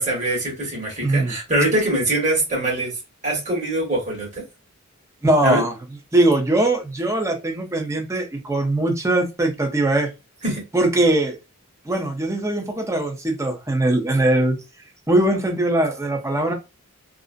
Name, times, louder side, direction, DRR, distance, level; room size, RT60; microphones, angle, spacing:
voice 1, 0.0-2.9 3.2-4.4 5.4-5.6 10.4-10.6, right 1 dB, 35° right, 1.2 m, -23 dB
voice 2, 1.0-1.3 5.2-5.7 6.1-10.1 10.7-11.4 11.8-14.6 15.1-16.5, right 1 dB, 15° right, 0.6 m, -20 dB
2.5 x 2.0 x 2.4 m
head